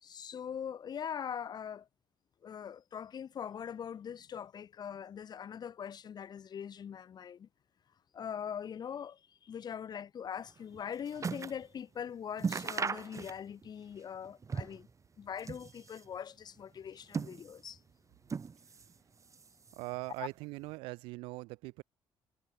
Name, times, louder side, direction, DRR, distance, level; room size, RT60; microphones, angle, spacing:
voice 1, 0.0-1.9 2.4-7.5 8.1-14.9 15.2-17.8 20.2-20.3, left 8 dB, 50° left, 1.6 m, -42 dB
sound 1, 10.5-11.7 12.0-12.1 12.4-13.7 14.0-14.9 15.3-16.1 16.8-17.8 18.3-19.0 19.3-20.0 20.7-20.8, right 5 dB, 35° right, 4.6 m, -38 dB
voice 2, 19.8-21.8, right 24 dB, 90° right, 2.9 m, -41 dB
supercardioid pair, 75°, 9 cm